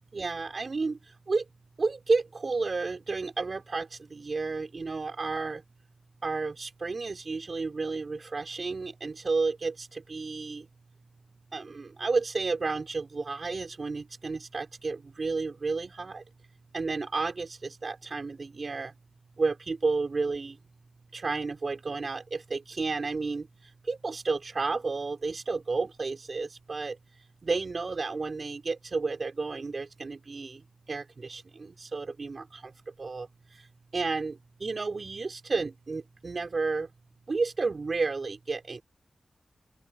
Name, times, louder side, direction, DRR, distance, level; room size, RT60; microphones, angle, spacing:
voice 1, 0.1-1.0 1.3-1.4 1.8-5.6 6.2-10.6 11.5-16.2 16.7-18.9 19.4-20.5 21.1-23.4 23.9-27.0 27.5-30.6 30.9-32.4 33.0-33.3 33.9-34.3 34.6-36.9 37.3-38.8, right 4 dB, 50° right, 5.7 m, -31 dB
open air
wide cardioid pair, 135°, 0 cm